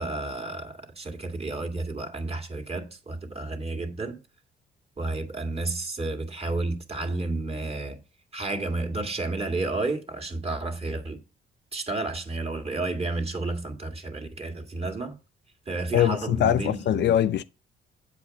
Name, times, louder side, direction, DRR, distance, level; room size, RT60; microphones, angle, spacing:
voice 1, 0.0-4.2 5.0-8.0 8.3-11.2 11.7-15.2 15.7-17.0, right 2 dB, 30° right, 2.0 m, -31 dB
voice 2, 15.9-17.4, left 10 dB, 65° left, 0.5 m, -22 dB
8.2 x 5.0 x 7.0 m
cardioid pair, 90°, 20 cm